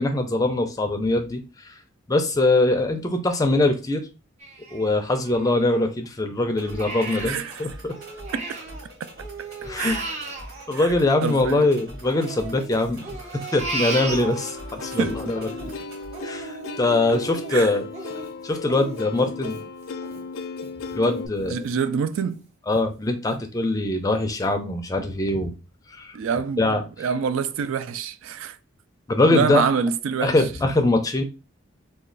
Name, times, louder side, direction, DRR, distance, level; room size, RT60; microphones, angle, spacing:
voice 1, 0.0-1.7 2.1-4.1 4.7-8.0 9.6-10.0 10.7-15.4 16.2-17.9 18.4-19.6 20.9-21.6 22.7-25.5 25.9-26.2 26.6-26.8 29.1-29.6 30.2-31.2, left 2 dB, 15° left, 0.4 m, -22 dB
Crying sobbing, 4.4-6.1 6.5-8.8 9.2-11.6 12.0-14.8 15.2-20.7 21.1-21.2 21.7-22.2 22.7-22.8 23.3-23.4, right 3 dB, 30° right, 0.6 m, -36 dB
sound 1, 6.6-16.2, equal, 50° right, 1.0 m, -43 dB
voice 2, 7.2-7.7 8.3-8.5 9.0-9.1 9.8-10.0 10.7-10.9 11.2-11.7 15.0-15.3 17.5-17.7 21.5-22.4 26.1-26.7 27.0-28.6 29.3-30.4, right 6 dB, 75° right, 0.3 m, -26 dB
Plucked string instrument, 13.9-21.3, left 4 dB, 80° left, 0.5 m, -35 dB
3.1 x 2.3 x 3.8 m
head